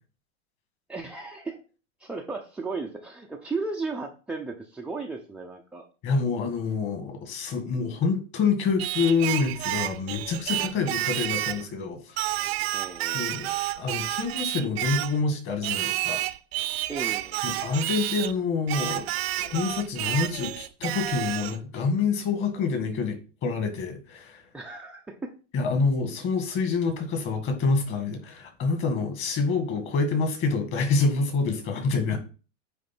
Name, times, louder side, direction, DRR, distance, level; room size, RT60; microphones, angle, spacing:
voice 1, 0.9-1.6 2.0-5.9 12.7-13.3 16.9-17.4 24.5-25.3, right 3 dB, 5° right, 0.5 m, -35 dB
voice 2, 6.0-12.2 13.1-13.5 13.8-16.2 17.4-19.1 19.4-24.4 25.5-32.2, left 4 dB, 30° left, 2.1 m, -27 dB
Singing, 8.8-11.7 12.2-15.2 15.6-18.3 18.7-21.6, right 16 dB, 55° right, 0.7 m, -30 dB
9.3 x 3.2 x 6.0 m
supercardioid pair, 145°, 36 cm